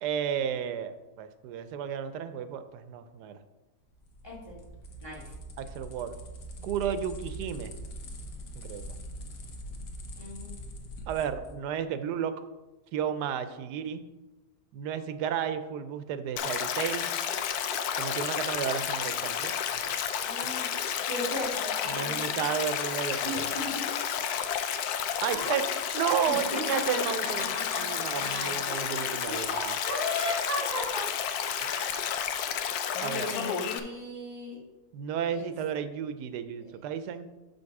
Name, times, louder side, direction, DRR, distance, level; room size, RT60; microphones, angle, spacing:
voice 1, 0.0-3.4 5.6-6.1 6.6-7.8 8.6-8.9 11.1-12.3 12.9-14.0 14.7-17.1 17.9-19.5 21.9-23.5 25.2-25.6 25.9-29.9 31.6-32.0 33.0-33.3 34.9-37.3, right 8 dB, 90° right, 11 dB, 1.2 m, -33 dB
sound 1, 3.9-11.6, right 1 dB, 90° left, 1.6 m, -42 dB
voice 2, 4.2-4.6 5.0-5.2 10.2-10.5 20.2-20.7 21.1-22.2 23.2-23.8 25.3-25.6 26.3-27.0 27.5-28.6 29.2-31.1 33.2-34.6 35.3-35.5, left 1 dB, 15° left, -6 dB, 2.4 m, -36 dB
Stream, 16.4-33.8, left 8 dB, 75° left, 1.1 m, -31 dB
6.9 x 5.3 x 4.7 m, 1.1 s
omnidirectional pair, 1.7 m